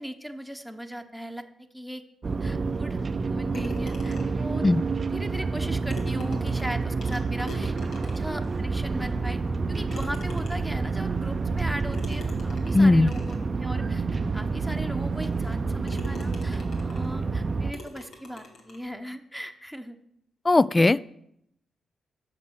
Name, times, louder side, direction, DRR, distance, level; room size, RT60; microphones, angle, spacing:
voice 1, 0.0-3.0 3.3-4.7 5.1-7.7 8.0-9.4 9.7-14.0 14.3-20.0, equal, 5° left, 6 dB, 1.1 m, -38 dB
sound 1, 2.2-17.7, right 4 dB, 45° right, 0.5 m, -28 dB
sound 2, 3.5-4.5 5.5-5.6 5.9-8.4 9.0-9.1 9.9-10.8 11.9-13.5 14.1-14.2 14.8-14.9 15.4-15.6 15.9-17.2 17.7-18.9, left 2 dB, 75° left, 2.1 m, -44 dB
voice 2, 12.7-13.1 20.5-21.0, left 2 dB, 25° left, 20 dB, 0.4 m, -18 dB
8.2 x 6.7 x 6.5 m, 0.76 s
cardioid pair, 60°, 0 cm